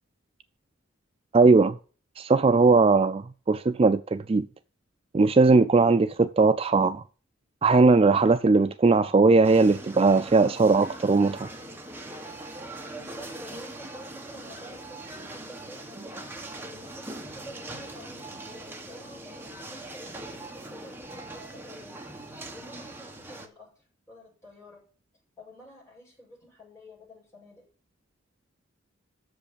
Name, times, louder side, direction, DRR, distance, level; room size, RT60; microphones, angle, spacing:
voice 1, 1.3-1.8 2.2-4.5 5.1-7.0 7.6-11.5, right 3 dB, 30° right, 0.4 m, -19 dB
sound 1, 9.4-23.5, right 2 dB, 10° right, 1.3 m, -41 dB
voice 2, 13.0-16.3 16.7-18.4 18.9-22.1 22.5-24.8 25.4-27.6, equal, 15° left, 6.1 m, -49 dB
7.8 x 7.0 x 6.9 m
head